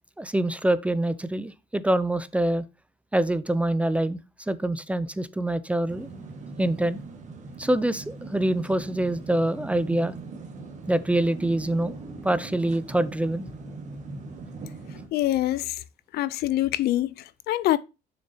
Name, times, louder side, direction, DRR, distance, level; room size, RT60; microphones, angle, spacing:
voice 1, 0.2-2.6 3.1-4.2 4.5-6.1 6.6-7.0 7.6-10.1 10.9-11.9 12.2-13.5, right 1 dB, 10° right, 0.4 m, -25 dB
sound 1, 5.9-15.1, right 3 dB, 45° right, 1.6 m, -40 dB
voice 2, 15.1-15.8 16.1-17.8, left 14 dB, 70° left, 0.5 m, -25 dB
6.9 x 6.5 x 2.8 m
cardioid pair, 110°, 17 cm